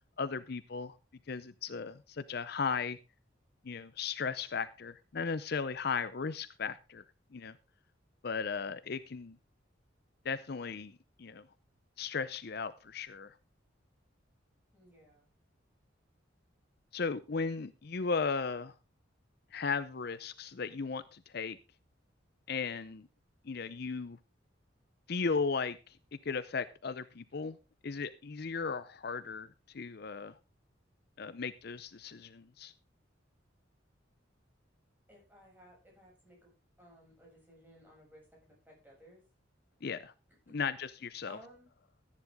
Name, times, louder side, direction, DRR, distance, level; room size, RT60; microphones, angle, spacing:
voice 1, 0.2-1.0 1.3-3.0 3.6-7.0 7.3-7.6 8.2-9.4 10.2-11.5 12.0-13.3 16.9-18.7 19.5-21.6 22.5-23.1 23.4-24.2 25.1-26.0 26.2-27.6 27.8-30.4 31.2-32.7 39.8-40.1 40.5-41.4, left 5 dB, 55° left, 14 dB, 0.6 m, -36 dB
voice 2, 14.7-15.3 35.1-36.5 36.8-39.2 40.5-40.6 41.3-41.7, equal, 10° right, -2 dB, 7.1 m, -58 dB
14.5 x 9.9 x 3.6 m, 0.29 s
head